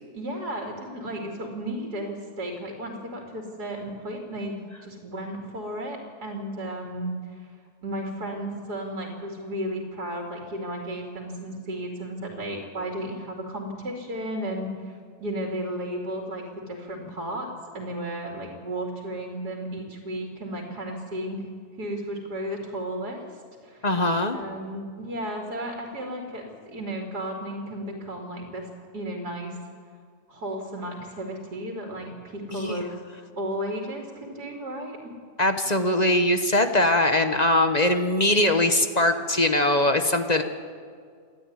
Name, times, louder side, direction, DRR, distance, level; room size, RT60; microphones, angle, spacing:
voice 1, 0.1-7.5 7.8-17.5 17.7-21.5 21.8-23.2 23.6-23.9 24.3-28.7 28.9-29.6 30.3-33.0 33.4-35.0, right 1 dB, 80° right, 0 dB, 3.2 m, -34 dB
voice 2, 23.8-24.4 32.5-32.8 35.4-40.4, left 1 dB, 30° left, 7 dB, 1.1 m, -21 dB
27.5 x 11.5 x 9.5 m, 2.1 s
omnidirectional pair, 1.6 m